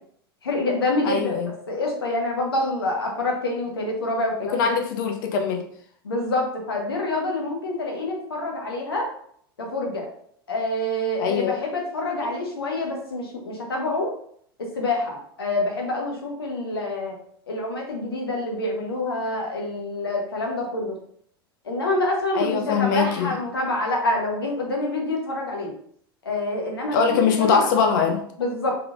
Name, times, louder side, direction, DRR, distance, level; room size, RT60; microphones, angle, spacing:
voice 1, 0.4-1.3 1.7-4.7 6.0-9.1 9.6-10.1 10.5-14.1 14.6-17.2 17.5-21.0 21.6-25.7 26.2-27.7 28.4-28.7, left 2 dB, 75° left, 0 dB, 1.2 m, -26 dB
voice 2, 1.0-1.5 4.5-5.6 11.2-11.6 12.2-12.3 22.3-23.3 26.9-28.2, left 6 dB, 55° left, 5 dB, 0.8 m, -22 dB
4.4 x 3.8 x 2.6 m, 0.64 s
figure-of-eight pair, 80°, 13 cm